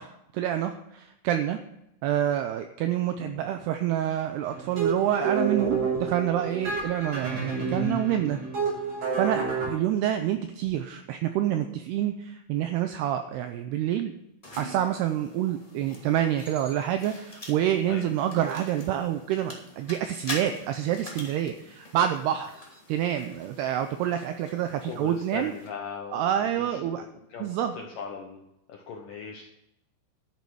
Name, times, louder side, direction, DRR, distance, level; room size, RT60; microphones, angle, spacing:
voice 1, 0.0-1.6 2.0-8.4 9.2-14.1 14.6-22.6 22.9-25.5 26.1-27.0 27.4-27.7, right 11 dB, 90° right, 8 dB, 2.3 m, -27 dB
sound 1, 4.4-9.7, right 5 dB, 50° right, 7.6 m, -29 dB
sound 2, 14.4-25.7, left 1 dB, 15° left, 1.1 m, -44 dB
voice 2, 24.9-29.4, left 5 dB, 75° left, 1 dB, 2.0 m, -40 dB
12.5 x 9.4 x 4.8 m, 0.83 s
omnidirectional pair, 5.4 m